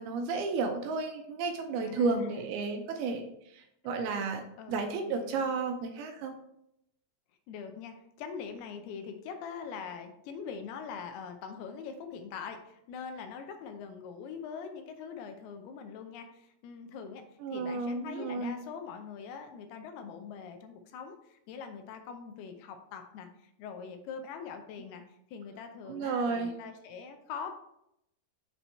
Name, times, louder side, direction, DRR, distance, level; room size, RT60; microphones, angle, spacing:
voice 1, 0.0-4.4 4.7-6.3 17.4-18.5 25.9-26.5, right 4 dB, 80° right, 5 dB, 2.3 m, -32 dB
voice 2, 1.8-2.5 4.6-4.8 5.0-5.5 7.5-17.2 17.5-27.5, left 6 dB, 80° left, 6 dB, 2.5 m, -43 dB
6.9 x 4.3 x 4.2 m, 0.79 s
omnidirectional pair, 4.8 m